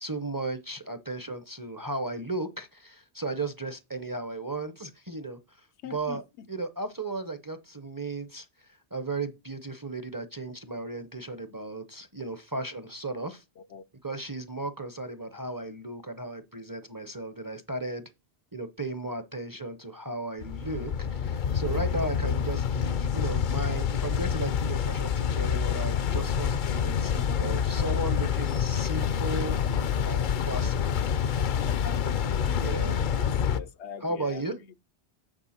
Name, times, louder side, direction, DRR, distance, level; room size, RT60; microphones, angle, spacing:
voice 1, 0.0-5.4 5.9-6.2 6.5-8.5 8.9-13.4 14.0-18.0 18.5-29.6 30.0-30.9 32.5-33.0 34.0-34.6, right 2 dB, 25° right, 0.6 m, -35 dB
voice 2, 5.8-6.5 13.6-13.8 33.1-34.8, left 7 dB, 85° left, 1.0 m, -43 dB
sound 1, 20.4-33.6, left 8 dB, 55° left, 0.6 m, -27 dB
8.9 x 4.3 x 4.2 m
omnidirectional pair, 1.1 m